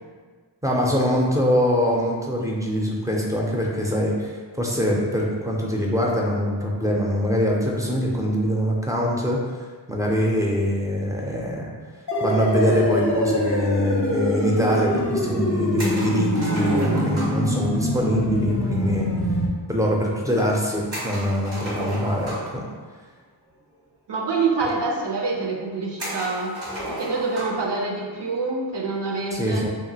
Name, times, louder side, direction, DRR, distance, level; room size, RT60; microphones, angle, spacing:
voice 1, 0.6-11.7 12.2-19.1 19.7-22.6 29.3-29.7, equal, 10° right, -2 dB, 0.3 m, -23 dB
sound 1, 12.1-19.5, left 1 dB, 40° left, 0.5 m, -24 dB
sound 2, 15.8-17.5 20.9-22.6 23.7-23.8 24.1-24.2 24.9-25.0 26.0-27.6, right 1 dB, 90° right, 1.4 m, -33 dB
voice 2, 16.4-17.1 24.1-26.6 26.9-29.7, right 3 dB, 65° right, -1 dB, 0.5 m, -26 dB
2.8 x 2.4 x 2.7 m, 1.5 s
wide cardioid pair, 95°, 45 cm